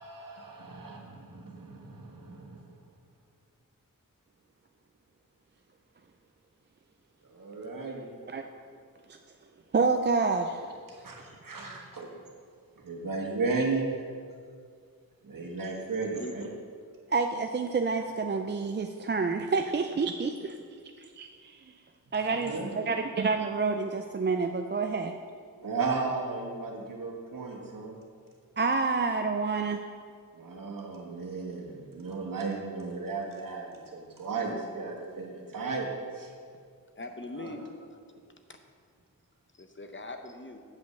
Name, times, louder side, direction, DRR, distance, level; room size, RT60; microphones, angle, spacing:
voice 1, 0.0-2.7 7.3-8.1 10.9-12.1 12.8-13.9 15.2-16.5 22.5-22.7 25.6-28.0 30.3-35.9 36.1-36.3 37.4-37.5, right 4 dB, 70° right, -1 dB, 1.5 m, -35 dB
voice 2, 9.7-10.7 17.1-20.6 21.0-21.8 22.1-25.2 28.6-29.8, right 4 dB, 35° right, 5 dB, 0.4 m, -28 dB
voice 3, 15.9-16.3 37.0-38.0 38.5-38.6 39.6-40.6, left 2 dB, 35° left, 6 dB, 0.7 m, -41 dB
8.2 x 5.3 x 6.5 m, 2.1 s
wide cardioid pair, 75°, 34 cm